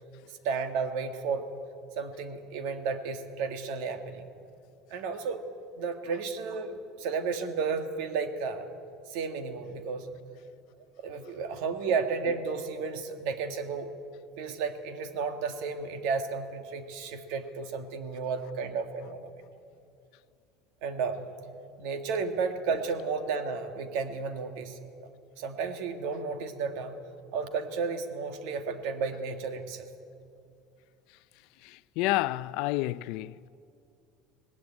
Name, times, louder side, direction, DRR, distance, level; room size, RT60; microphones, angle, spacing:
voice 1, 0.4-1.5 2.0-4.3 4.9-5.4 5.8-8.7 9.1-10.1 11.0-13.9 14.4-19.3 20.8-21.3 21.8-24.8 25.4-27.0 27.3-29.9, right 5 dB, 70° right, 1.9 m, -32 dB
voice 2, 31.6-33.5, left 17 dB, 65° left, 0.5 m, -30 dB
19.0 x 17.5 x 8.7 m
cardioid pair, 155°, 0 cm